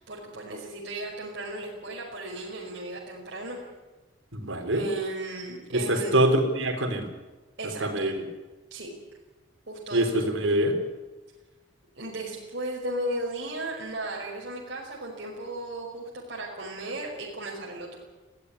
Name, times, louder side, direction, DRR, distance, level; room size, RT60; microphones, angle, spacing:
voice 1, 0.0-3.6 4.7-6.3 7.6-8.1 8.7-8.9 9.7-10.1 12.0-18.0, right 1 dB, 55° right, -3 dB, 5.4 m, -35 dB
voice 2, 4.3-4.8 5.7-7.1 7.8-8.3 9.9-10.8, right 1 dB, 80° right, 5 dB, 4.2 m, -24 dB
21.5 x 16.0 x 9.8 m, 1.2 s
head